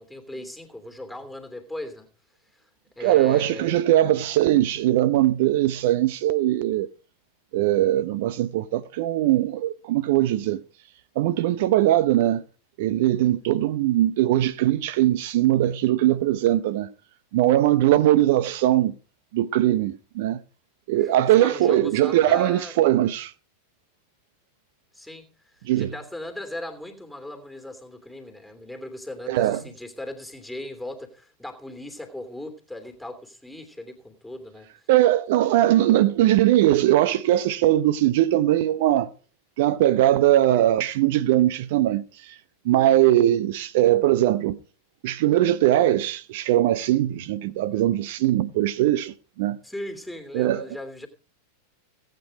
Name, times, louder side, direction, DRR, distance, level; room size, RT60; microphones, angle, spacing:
voice 1, 0.0-2.1 2.5-2.6 3.0-3.8 21.0-22.7 24.9-25.3 25.5-34.7 47.7-48.0 49.6-51.1, left 1 dB, ahead, 3.0 m, -38 dB
voice 2, 3.0-6.9 7.5-10.6 11.2-12.4 12.8-16.9 17.3-19.0 19.3-20.4 20.9-23.3 25.6-25.9 29.3-29.6 34.9-39.1 39.6-42.4 42.6-44.6 45.0-49.6 50.3-50.7, right 13 dB, 50° right, 0.7 m, -20 dB
17.5 x 9.1 x 5.1 m
figure-of-eight pair, 90°, 0 cm